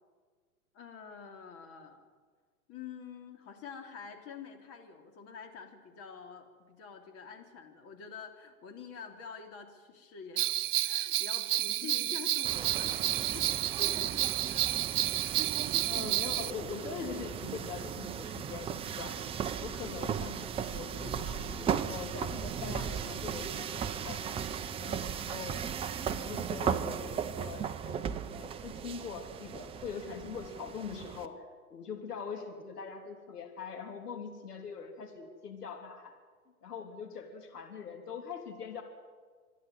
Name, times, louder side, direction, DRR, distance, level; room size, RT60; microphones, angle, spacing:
voice 1, 0.7-2.1 2.7-14.7 19.5-19.8 24.5-24.8, left 6 dB, 30° left, 4 dB, 3.2 m, -47 dB
Bell, 10.4-16.5, right 14 dB, 80° right, 0.5 m, -30 dB
sound 1, 12.4-31.3, right 7 dB, 10° right, 0.6 m, -37 dB
voice 2, 13.6-14.0 15.1-15.3 15.8-19.2 19.6-24.2 24.8-25.6 26.0-28.1 28.3-31.4 31.7-36.1 36.6-38.8, left 5 dB, 80° left, 4 dB, 3.5 m, -42 dB
26.5 x 11.0 x 10.0 m, 1.5 s
hypercardioid pair, 120°, 46 cm